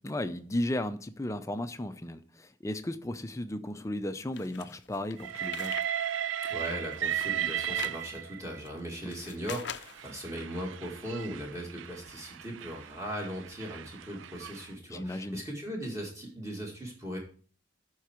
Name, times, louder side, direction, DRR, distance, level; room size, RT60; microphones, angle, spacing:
voice 1, 0.0-5.8 9.0-9.1 14.9-15.4, left 1 dB, 15° left, 0.5 m, -35 dB
sound 1, 4.3-5.9 6.3-8.0 8.7-10.1, left 8 dB, 65° left, 0.5 m, -43 dB
Train, 5.2-8.6 9.4-14.7, right 10 dB, 80° right, 0.4 m, -36 dB
voice 2, 6.5-17.2, equal, 15° right, 2.1 m, -38 dB
13.0 x 4.6 x 4.5 m
head